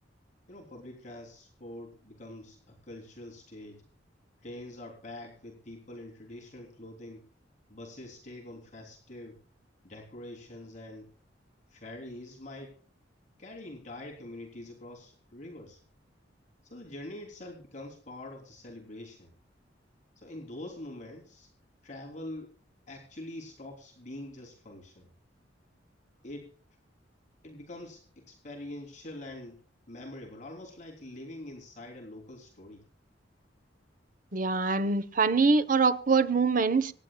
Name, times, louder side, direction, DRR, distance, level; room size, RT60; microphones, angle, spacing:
voice 1, 0.5-3.8 4.4-7.3 7.7-9.4 9.8-11.1 11.7-12.7 13.4-15.8 16.6-19.3 20.2-21.5 21.8-22.5 22.9-25.1 26.2-26.5 27.4-29.6 29.9-32.8, left 1 dB, 40° left, 3.3 m, -44 dB
voice 2, 34.3-36.9, right 4 dB, 50° right, 1.0 m, -24 dB
25.5 x 10.5 x 2.3 m
head